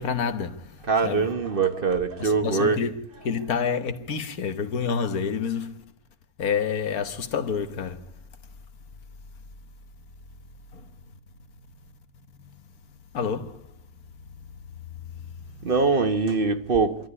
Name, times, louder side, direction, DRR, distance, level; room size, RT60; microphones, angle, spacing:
voice 1, 0.0-1.3 2.2-5.8 6.4-8.1 10.7-10.9 13.1-13.7 14.9-15.0, left 6 dB, 80° left, 1.7 m, -28 dB
voice 2, 0.9-2.8 15.6-17.1, right 4 dB, 40° right, 1.2 m, -23 dB
28.0 x 13.0 x 9.8 m
omnidirectional pair, 1.5 m